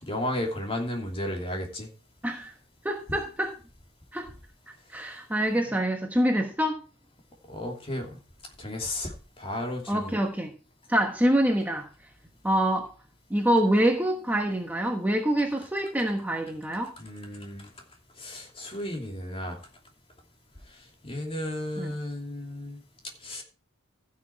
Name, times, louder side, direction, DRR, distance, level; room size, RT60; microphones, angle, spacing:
voice 1, 0.0-1.9 7.5-8.2 8.6-10.2 17.0-17.7 18.2-19.6 20.7-22.8 23.2-23.4, left 1 dB, 25° left, 2.8 m, -34 dB
voice 2, 2.8-3.5 4.1-4.3 4.9-6.8 9.9-10.5 10.9-11.9 12.4-12.9 13.3-16.9 21.8-21.9, right 1 dB, 10° right, 1.2 m, -25 dB
15.0 x 6.5 x 4.6 m
head